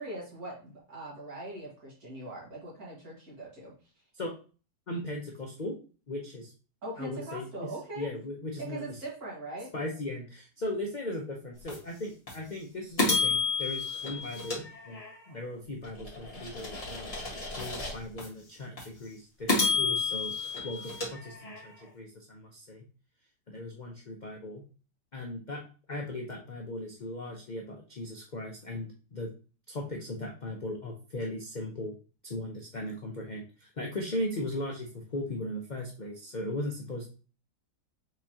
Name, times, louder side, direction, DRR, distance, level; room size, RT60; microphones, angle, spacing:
voice 1, 0.0-3.7 6.8-8.1 8.6-9.7, right 2 dB, 60° right, -3 dB, 2.3 m, -41 dB
voice 2, 4.9-5.8 6.1-6.5 7.0-7.7 7.9-9.0 9.7-15.0 15.3-17.1 17.6-20.4 20.6-22.8 23.5-24.6 25.1-25.6 25.9-29.3 29.7-32.0 32.2-37.1, left 1 dB, 60° left, 0 dB, 0.4 m, -38 dB
sound 1, 11.7-11.8 12.3-12.4 13.0-15.3 15.8-18.3 18.8-18.9 19.5-21.8, left 4 dB, 20° left, 1.5 m, -31 dB
4.9 x 3.6 x 2.8 m, 0.36 s
omnidirectional pair, 1.8 m